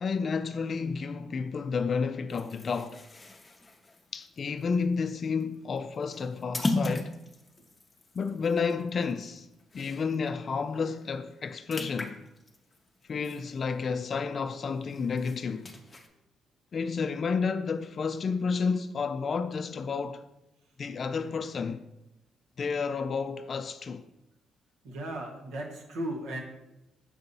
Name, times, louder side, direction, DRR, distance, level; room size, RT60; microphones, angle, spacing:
voice 1, 0.0-3.0 4.1-7.1 8.1-9.5 9.7-12.2 13.1-15.7 16.7-20.3 20.8-21.8 22.6-24.1, left 5 dB, 45° left, 0.3 m, -31 dB
sound 1, 2.3-10.3 10.7-10.8 11.1-14.1 14.5-16.1, left 2 dB, 25° left, 0.7 m, -38 dB
voice 2, 24.8-26.4, right 1 dB, 90° right, 1.4 m, -36 dB
6.8 x 2.7 x 5.3 m
cardioid pair, 90°, 0 cm